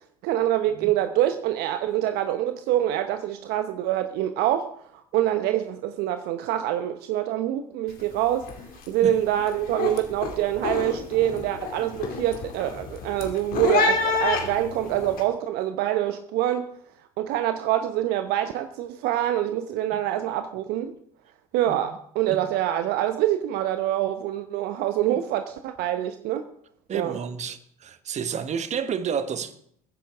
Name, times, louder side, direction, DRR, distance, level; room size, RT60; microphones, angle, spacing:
voice 1, 0.2-8.5 8.9-16.7 17.2-20.9 21.5-26.4 26.9-27.2, right 12 dB, 55° right, 0.9 m, -25 dB
sound 1, 7.9-8.2 8.4-8.9 9.3-15.2, left 5 dB, 50° left, 2.7 m, -28 dB
voice 2, 21.7-22.0 22.3-22.4 25.1-25.2 26.9-29.5, right 7 dB, 35° right, 1.3 m, -31 dB
22.0 x 10.0 x 3.6 m
hypercardioid pair, 70°, 19 cm